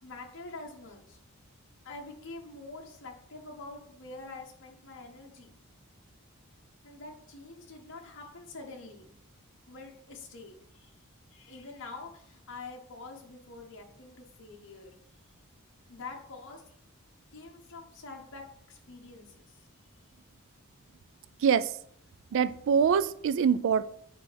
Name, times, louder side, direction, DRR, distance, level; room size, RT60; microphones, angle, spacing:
voice 1, 0.0-1.2 1.8-5.5 6.8-9.1 9.7-10.9 11.3-15.0 15.9-16.7 17.3-19.7, left 3 dB, 55° left, 1.0 m, -46 dB
voice 2, 21.4-21.8 22.3-23.8, right 7 dB, 60° right, 0.3 m, -24 dB
8.1 x 4.4 x 3.4 m
head